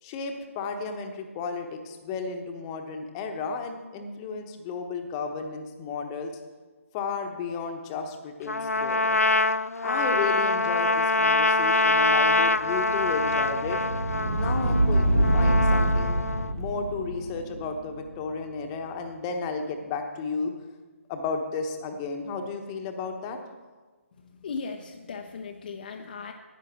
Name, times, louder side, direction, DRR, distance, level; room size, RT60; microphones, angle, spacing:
voice 1, 0.0-6.3 6.9-9.2 9.8-13.8 14.3-16.2 16.6-20.5 21.1-23.4, left 4 dB, 20° left, 5 dB, 1.1 m, -33 dB
Trumpet, 8.5-16.5, left 2 dB, 85° left, 0.4 m, -25 dB
sound 1, 12.3-19.2, right 1 dB, 70° right, 2.5 m, -26 dB
voice 2, 24.4-26.3, left 5 dB, 40° left, 2 dB, 0.7 m, -37 dB
10.0 x 9.7 x 6.1 m, 1.3 s
figure-of-eight pair, 145°, 8 cm